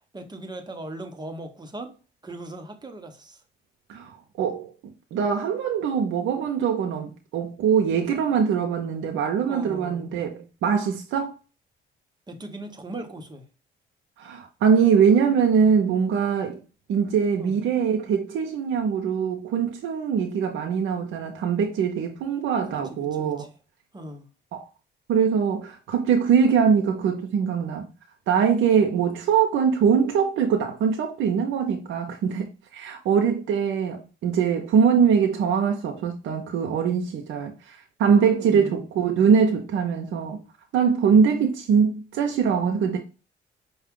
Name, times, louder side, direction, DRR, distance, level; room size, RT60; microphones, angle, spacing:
voice 1, 0.1-1.9 2.2-3.4 9.5-10.1 12.3-13.5 17.4-17.6 22.7-22.8 23.2-23.5 23.9-24.3 38.4-38.8, right 1 dB, 20° right, 1.0 m, -38 dB
voice 2, 3.9-4.7 5.1-11.4 14.2-16.6 16.9-23.5 24.5-24.6 25.1-27.9 28.3-40.4 40.7-43.0, right 6 dB, 80° right, 0.7 m, -22 dB
5.7 x 2.4 x 3.6 m
cardioid pair, 90°, 20 cm